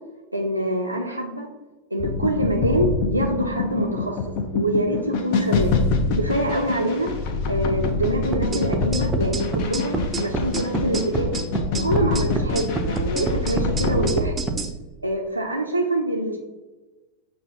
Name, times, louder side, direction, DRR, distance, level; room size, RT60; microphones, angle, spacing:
voice 1, 0.3-1.5 1.9-4.2 4.5-5.7 6.1-7.1 7.5-11.3 11.7-14.3 15.0-16.4, right 1 dB, 85° right, -1 dB, 0.4 m, -25 dB
sound 1, 2.0-14.1, left 4 dB, 45° left, 0.4 m, -25 dB
sound 2, 8.3-14.7, right 2 dB, 15° right, 0.4 m, -26 dB
6.6 x 2.2 x 2.6 m, 1.2 s
figure-of-eight pair, 90°, 0 cm